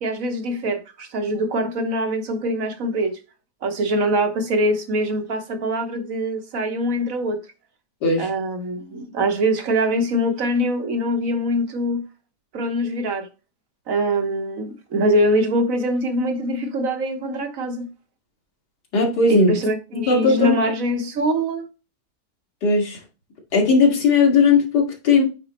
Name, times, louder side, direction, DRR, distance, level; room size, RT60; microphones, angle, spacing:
voice 1, 0.0-3.2 3.6-7.4 8.2-12.0 12.5-13.3 13.9-17.9 19.3-21.7, equal, 60° right, 1.4 m, -23 dB
voice 2, 18.9-19.6 19.9-20.6 22.6-23.0 23.5-25.2, left 4 dB, 90° left, 2.4 m, -17 dB
8.6 x 4.0 x 2.9 m
omnidirectional pair, 1.7 m